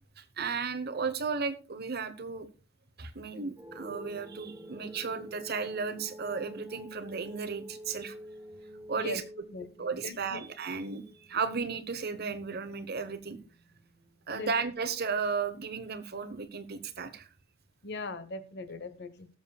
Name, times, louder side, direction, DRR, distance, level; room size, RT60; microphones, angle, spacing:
voice 1, 0.2-2.5 3.0-8.1 8.9-9.2 9.8-13.4 14.3-17.3, right 5 dB, 50° right, 11 dB, 1.0 m, -34 dB
sound 1, 3.6-14.6, equal, 10° right, 1.1 m, -48 dB
voice 2, 9.5-10.4 14.3-14.5 17.8-19.3, left 3 dB, 55° left, 11 dB, 1.0 m, -40 dB
19.0 x 7.2 x 2.3 m, 0.33 s
head